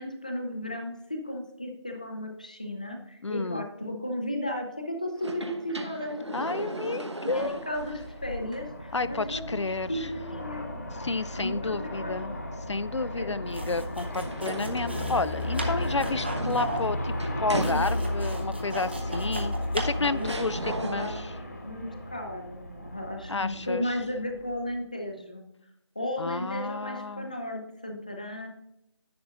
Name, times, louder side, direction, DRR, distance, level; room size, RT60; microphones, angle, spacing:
voice 1, 0.0-6.4 6.9-9.6 9.9-10.7 11.3-12.3 13.2-13.4 19.9-21.2 21.6-25.5 26.0-28.5, left 1 dB, 15° left, 3 dB, 0.6 m, -35 dB
voice 2, 3.2-3.7 6.3-7.6 8.9-10.1 10.9-12.4 12.7-17.1 17.4-21.3 23.3-23.9 26.2-27.3, left 3 dB, 85° left, 15 dB, 0.5 m, -31 dB
sound 1, 5.2-8.1 8.5-8.6 14.0-18.3 19.4-19.5 20.2-21.4, right 1 dB, 75° right, 1.1 m, -37 dB
Aircraft, 7.5-24.8, left 1 dB, 35° left, 1.2 m, -35 dB
sound 2, 13.5-20.5, right 1 dB, 25° right, 0.7 m, -37 dB
10.5 x 9.3 x 2.4 m, 0.82 s
figure-of-eight pair, 170°, 15 cm